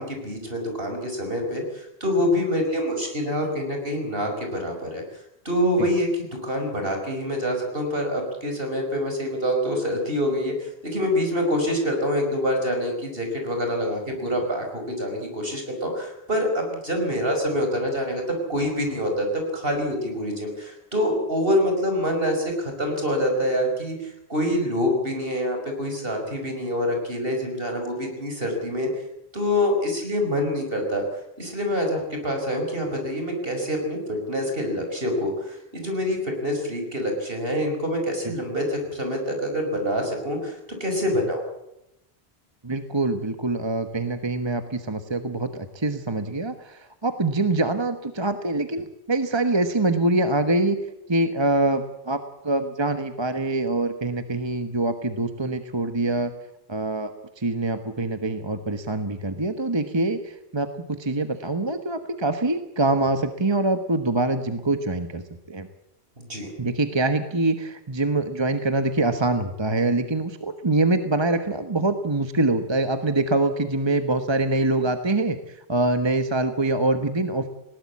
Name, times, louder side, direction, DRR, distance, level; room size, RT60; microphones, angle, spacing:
voice 1, 0.0-5.0 5.5-18.2 18.5-28.9 29.3-31.0 31.4-40.6 40.8-41.5 66.2-66.5, equal, 60° right, 3 dB, 5.6 m, -26 dB
voice 2, 42.6-50.8 51.1-52.2 52.4-56.3 56.7-65.2 65.5-65.7 66.6-77.5, right 2 dB, 25° right, 8 dB, 1.2 m, -24 dB
20.0 x 18.0 x 8.4 m, 0.85 s
omnidirectional pair, 1.1 m